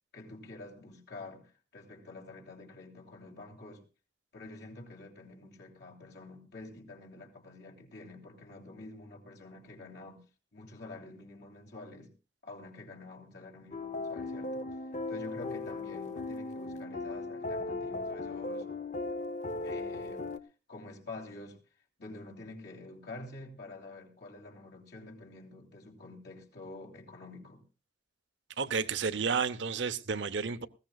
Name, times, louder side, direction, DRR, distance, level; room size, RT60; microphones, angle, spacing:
voice 1, 0.1-3.8 4.3-10.2 10.5-12.1 12.4-14.7 15.1-18.7 19.6-20.3 20.7-21.6 22.0-27.6, left 2 dB, 65° left, 3.3 m, -48 dB
sound 1, 13.7-20.4, left 2 dB, 40° left, 0.7 m, -37 dB
voice 2, 28.6-30.7, right 5 dB, 80° right, 0.9 m, -31 dB
20.0 x 16.0 x 2.4 m
head